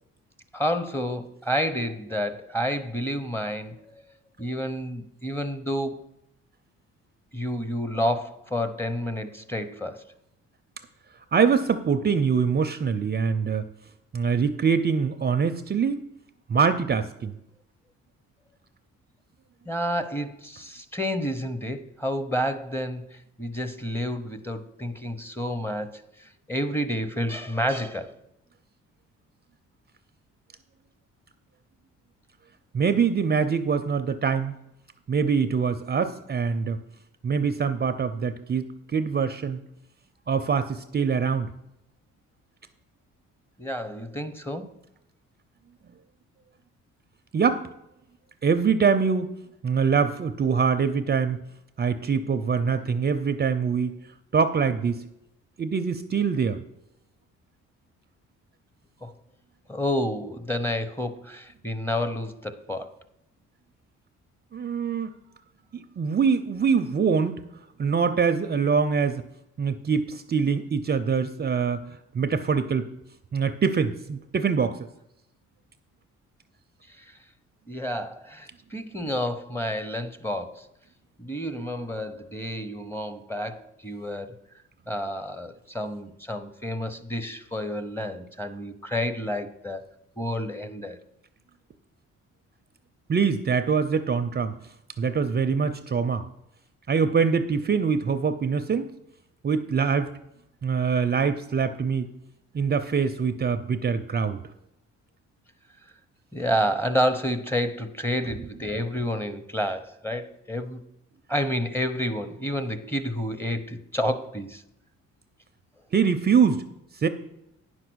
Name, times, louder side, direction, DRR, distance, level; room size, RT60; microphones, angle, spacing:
voice 1, 0.5-4.0 4.4-6.0 7.3-10.0 19.7-28.2 43.6-44.7 59.0-59.1 59.7-62.9 76.9-77.1 77.7-80.7 81.2-84.4 84.9-89.8 90.2-91.0 106.3-110.8 111.3-114.6, equal, 10° left, 7 dB, 0.9 m, -30 dB
voice 2, 11.3-13.7 14.1-16.0 16.5-17.3 32.7-34.5 35.1-36.8 37.2-39.6 40.3-41.5 47.3-47.7 48.4-49.4 49.6-51.4 51.8-54.0 54.3-55.0 55.6-56.6 64.5-65.1 65.7-67.4 67.8-69.2 69.6-71.8 72.1-72.9 73.3-74.8 93.1-94.5 95.0-96.2 96.9-98.9 99.4-100.1 100.6-102.1 102.5-104.4 115.9-116.6 117.0-117.1, right 6 dB, 35° right, 10 dB, 0.5 m, -24 dB
9.8 x 5.8 x 6.2 m, 0.84 s
cardioid pair, 90°, 30 cm